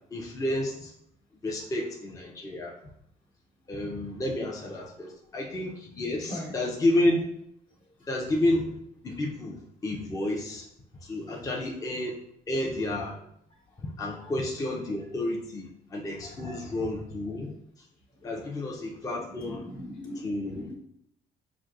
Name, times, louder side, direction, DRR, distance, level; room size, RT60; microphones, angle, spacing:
voice 1, 0.1-0.9 1.4-2.7 3.7-7.2 8.1-8.8 9.0-10.6 11.0-12.2 12.5-13.2 13.8-17.5 18.2-19.7 20.1-20.7, left 1 dB, 20° left, -2 dB, 0.6 m, -30 dB
voice 2, 16.2-16.6 18.2-18.3 19.4-20.7, left 1 dB, 50° left, -4 dB, 1.2 m, -40 dB
6.1 x 2.6 x 2.4 m, 0.73 s
cardioid pair, 110°, 17 cm